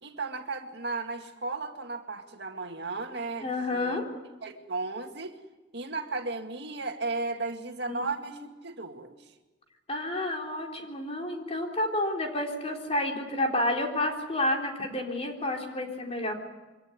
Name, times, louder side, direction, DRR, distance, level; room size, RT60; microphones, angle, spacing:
voice 1, 0.0-4.0 4.4-5.4 5.7-9.2, right 3 dB, 65° right, 5 dB, 2.1 m, -35 dB
voice 2, 3.4-4.1 7.9-8.0 9.9-16.4, left 1 dB, 35° left, 2 dB, 3.8 m, -30 dB
24.0 x 17.0 x 9.5 m, 1.2 s
head